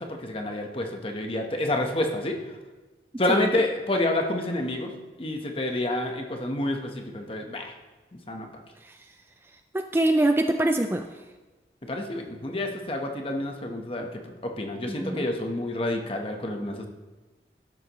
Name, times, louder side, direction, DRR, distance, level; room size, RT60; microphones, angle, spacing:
voice 1, 0.0-2.4 3.2-4.9 5.2-7.7 8.3-8.5 11.8-16.9, left 1 dB, 30° left, 3 dB, 1.1 m, -28 dB
voice 2, 9.7-11.1 14.9-15.2, right 1 dB, 15° right, 6 dB, 0.4 m, -24 dB
12.0 x 11.0 x 3.1 m, 1.2 s
head